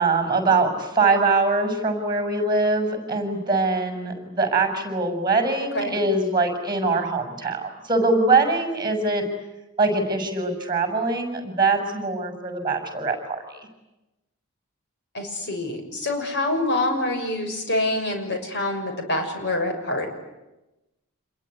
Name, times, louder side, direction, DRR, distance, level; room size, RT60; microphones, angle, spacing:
voice 1, 0.0-9.2 9.8-13.6, right 3 dB, 20° right, 6 dB, 6.1 m, -23 dB
voice 2, 15.1-20.1, left 1 dB, 55° left, 4 dB, 6.5 m, -26 dB
27.5 x 22.0 x 9.8 m, 0.99 s
head